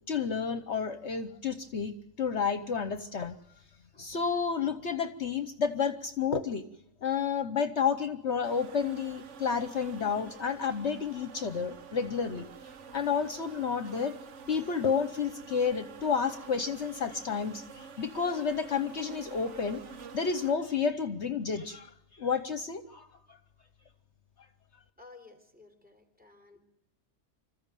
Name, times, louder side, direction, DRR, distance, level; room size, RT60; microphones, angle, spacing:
voice 1, 0.1-3.3 4.0-6.6 7.0-12.5 12.9-14.1 14.5-19.8 20.1-23.4, left 6 dB, 60° left, 11 dB, 1.2 m, -31 dB
sound 1, 8.4-20.5, right 6 dB, 65° right, 1.4 m, -48 dB
voice 2, 25.0-26.6, left 3 dB, 5° right, 6 dB, 3.7 m, -54 dB
26.5 x 14.5 x 9.1 m, 0.82 s
omnidirectional pair, 1.4 m